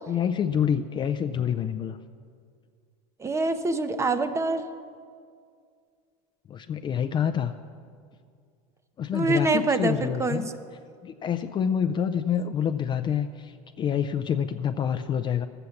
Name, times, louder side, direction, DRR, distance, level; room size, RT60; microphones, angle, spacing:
voice 1, 0.1-2.0 6.5-7.5 9.0-10.5 11.0-15.5, left 8 dB, 25° left, 9 dB, 0.4 m, -27 dB
voice 2, 3.2-4.7 9.1-10.4, right 3 dB, 15° right, 10 dB, 0.7 m, -25 dB
13.0 x 7.9 x 7.0 m, 2.2 s
supercardioid pair, 125°, 18 cm